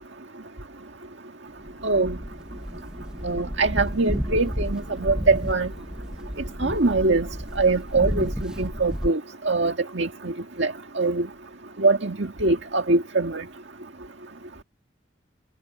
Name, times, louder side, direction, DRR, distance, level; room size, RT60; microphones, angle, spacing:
sound 1, 1.6-9.1, equal, 5° right, 1.4 m, -32 dB
voice 1, 1.8-2.2 3.2-5.7 6.6-7.3 7.6-9.2 9.5-10.3 10.6-11.3 11.8-13.4, right 3 dB, 65° right, 1.9 m, -23 dB
head